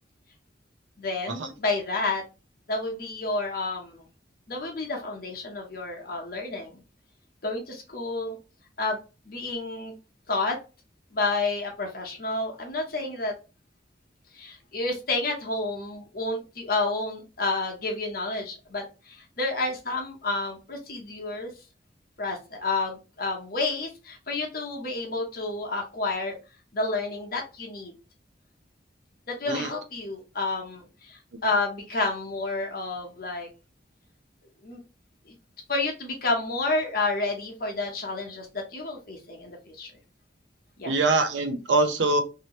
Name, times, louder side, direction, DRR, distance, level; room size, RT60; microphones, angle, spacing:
voice 1, 1.0-2.2 2.7-4.0 4.5-6.8 7.4-8.4 8.8-9.0 9.2-9.9 10.3-10.6 11.1-13.3 14.3-21.5 22.2-26.4 26.7-27.9 29.3-33.5 34.6-34.8 35.3-35.4 35.7-39.9 40.8-40.9, left 3 dB, 55° left, 1 dB, 1.0 m, -30 dB
voice 2, 40.8-42.2, right 2 dB, 90° right, 8 dB, 0.6 m, -24 dB
2.9 x 2.8 x 3.0 m, 0.31 s
head